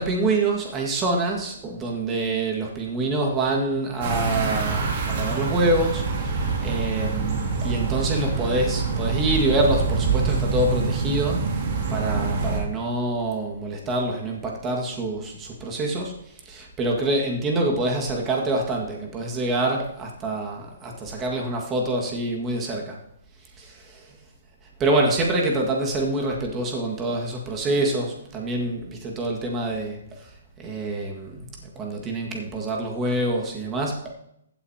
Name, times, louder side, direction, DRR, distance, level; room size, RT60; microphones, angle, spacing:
voice 1, 0.0-11.5 11.9-16.2 16.5-23.0 23.6-24.0 24.8-30.3 30.6-34.1, right 2 dB, 15° right, 0 dB, 1.8 m, -26 dB
sound 1, 4.0-12.6, right 4 dB, 45° right, 2.6 m, -25 dB
15.0 x 8.1 x 2.9 m, 0.76 s
hypercardioid pair, 155°, 0 cm